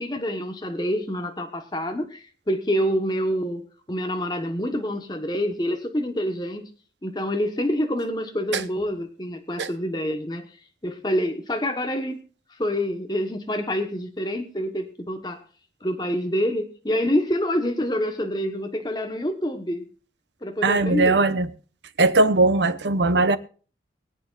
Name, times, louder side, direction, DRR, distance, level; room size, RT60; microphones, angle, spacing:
voice 1, 0.0-6.6 7.0-10.4 10.8-12.2 12.6-15.4 15.8-19.8 20.4-21.2, equal, 25° left, 1.3 m, -27 dB
voice 2, 20.6-21.5 22.0-23.4, right 2 dB, 85° right, 1.0 m, -19 dB
23.0 x 8.7 x 2.5 m
head